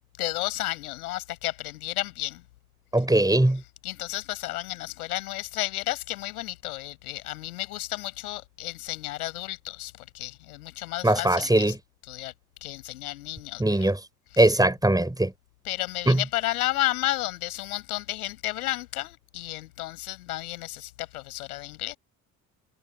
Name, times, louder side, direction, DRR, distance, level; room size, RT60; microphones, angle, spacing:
voice 1, 0.2-2.4 3.8-11.7 12.1-12.3 12.6-13.9 14.3-14.6 15.6-22.0, left 17 dB, 85° left, 7.2 m, -32 dB
voice 2, 2.9-3.6 11.0-11.8 13.6-14.0 14.4-15.3 16.1-16.2, right 1 dB, 10° right, 4.9 m, -20 dB
hypercardioid pair, 55°, 43 cm